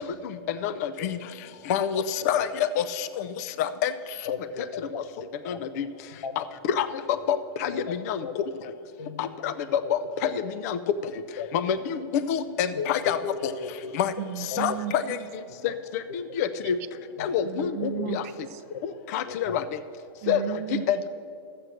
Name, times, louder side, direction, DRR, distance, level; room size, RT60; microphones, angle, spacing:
voice 1, 0.6-1.2 1.7-3.1 3.6-3.9 5.5-5.9 6.4-6.5 6.8-6.9 7.3-8.2 9.2-10.3 10.6-10.8 11.5-11.8 12.3-13.2 13.9-14.1 14.6-15.2 15.9-16.0 16.4-16.8 17.2-18.2 18.8-19.6 20.3-20.4 20.9-21.1, left 9 dB, 40° left, 13 dB, 0.4 m, -27 dB
voice 2, 4.3-5.0 5.5-5.6 6.2-6.3 7.1-7.4 8.2-8.3 9.0-9.3 10.2-10.3 11.4-11.5 12.8-13.3 13.6-13.9 17.2-17.3 18.0-18.1 18.7-18.8 19.3-19.4, left 6 dB, 80° left, 10 dB, 1.0 m, -35 dB
voice 3, 14.2-15.2 17.4-18.6 20.2-20.8, right 10 dB, 40° right, 11 dB, 0.5 m, -34 dB
12.5 x 7.7 x 6.3 m, 2.5 s
supercardioid pair, 160°, 13 cm